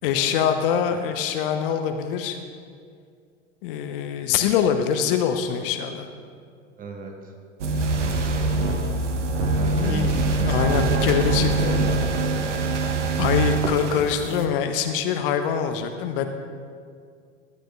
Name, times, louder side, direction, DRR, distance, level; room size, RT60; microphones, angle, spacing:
voice 1, 0.0-2.4 3.6-6.1 9.7-11.7 13.2-16.3, left 8 dB, 50° left, 7 dB, 0.7 m, -24 dB
voice 2, 6.8-7.1 8.0-8.7 9.5-12.5, right 3 dB, 25° right, 2 dB, 1.1 m, -34 dB
sound 1, 7.6-14.4, right 2 dB, 75° right, 0.9 m, -24 dB
11.5 x 9.0 x 2.3 m, 2.2 s
figure-of-eight pair, 85°, 36 cm